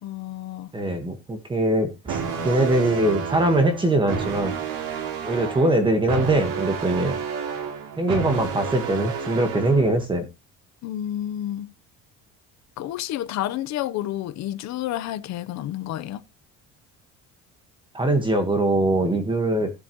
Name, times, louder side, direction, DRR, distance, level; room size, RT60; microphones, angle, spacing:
voice 1, 0.0-0.7 10.8-11.7 12.8-16.2, left 12 dB, 60° left, 1.1 m, -30 dB
voice 2, 0.7-2.2 2.4-4.5 5.2-7.2 8.0-10.2 17.9-19.7, right 1 dB, 15° right, 1.7 m, -22 dB
sound 1, 2.1-10.0, right 7 dB, 90° right, 3.3 m, -30 dB
16.0 x 7.9 x 3.2 m
cardioid pair, 155°, 31 cm